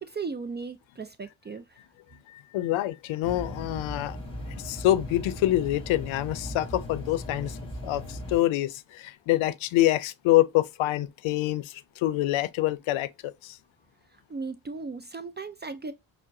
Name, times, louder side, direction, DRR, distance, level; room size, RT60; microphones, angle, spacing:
voice 1, 0.0-1.8 14.1-15.9, right 4 dB, 25° right, 0.4 m, -37 dB
voice 2, 2.3-4.2 4.6-7.6 7.8-13.6, left 15 dB, 85° left, 0.6 m, -26 dB
sound 1, 3.2-8.4, equal, 10° left, 1.9 m, -38 dB
5.6 x 2.1 x 2.6 m
cardioid pair, 75°, 46 cm